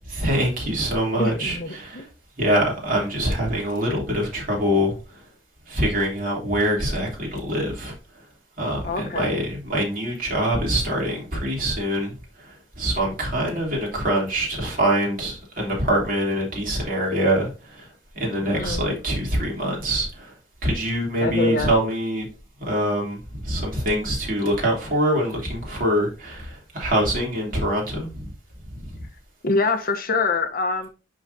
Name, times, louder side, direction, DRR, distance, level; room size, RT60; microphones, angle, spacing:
voice 1, 0.1-2.0 2.4-4.9 5.7-7.9 8.6-12.1 12.8-17.5 18.1-20.3 20.6-22.3 22.6-28.3 28.8-28.9, equal, 50° right, 3.1 m, -24 dB
voice 2, 1.2-2.1 8.8-9.3 18.3-18.8 21.2-21.7 29.4-30.9, left 3 dB, 50° left, 0.9 m, -25 dB
11.0 x 3.9 x 2.7 m
head